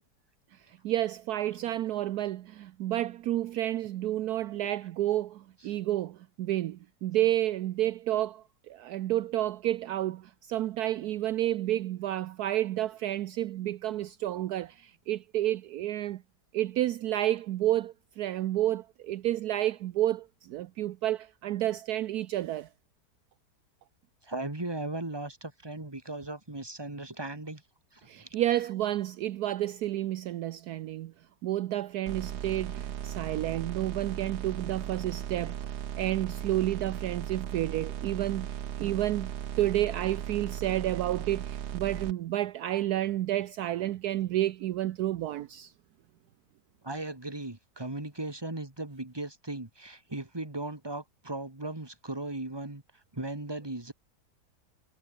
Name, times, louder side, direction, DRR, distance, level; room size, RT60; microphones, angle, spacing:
voice 1, 0.7-16.2 16.5-22.7 28.1-31.1 31.4-35.7 36.0-39.3 39.6-45.7, right 13 dB, 70° right, 1.1 m, -30 dB
voice 2, 24.2-27.6 27.9-28.4 46.8-52.8 53.1-53.9, right 2 dB, 15° right, 2.5 m, -37 dB
sound 1, 32.1-42.1, right 9 dB, 55° right, 0.9 m, -37 dB
omnidirectional pair, 1.8 m